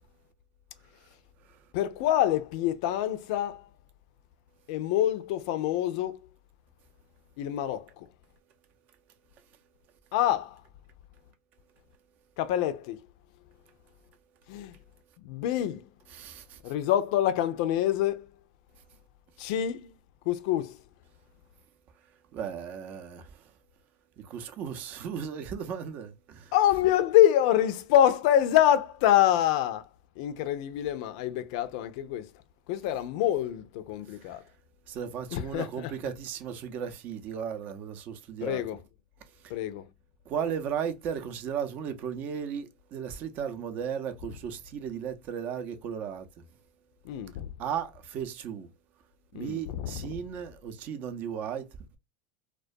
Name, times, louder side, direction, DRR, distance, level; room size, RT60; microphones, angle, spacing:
voice 1, 1.7-3.7 4.7-6.2 7.4-8.1 10.1-10.6 12.4-13.0 14.5-14.7 15.2-15.9 16.6-18.3 19.4-19.9 20.3-20.8 26.5-29.9 30.2-32.3 32.7-34.4 35.3-35.9 38.4-38.8 39.5-39.8 47.0-47.5 49.3-50.1, left 12 dB, 65° left, 0.4 m, -26 dB
voice 2, 16.1-16.6 22.3-23.5 24.2-26.5 34.1-34.4 34.9-38.6 39.4-39.5 40.3-46.5 47.6-48.7 49.3-51.7, right 8 dB, 50° right, 0.5 m, -36 dB
2.2 x 2.2 x 2.5 m
hypercardioid pair, 95°, 4 cm